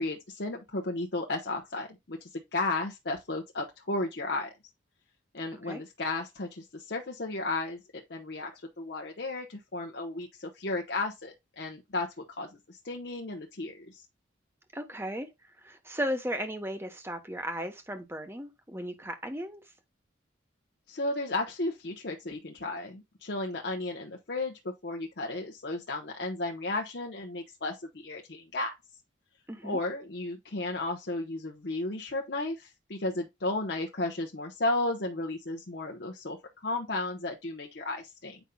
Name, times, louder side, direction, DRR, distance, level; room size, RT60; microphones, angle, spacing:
voice 1, 0.0-4.5 5.3-14.0 20.9-28.7 29.6-38.4, left 2 dB, 60° left, 0.9 m, -34 dB
voice 2, 14.7-15.3 15.6-19.6 29.5-29.8, equal, 15° right, 1.0 m, -36 dB
8.1 x 5.3 x 2.3 m
head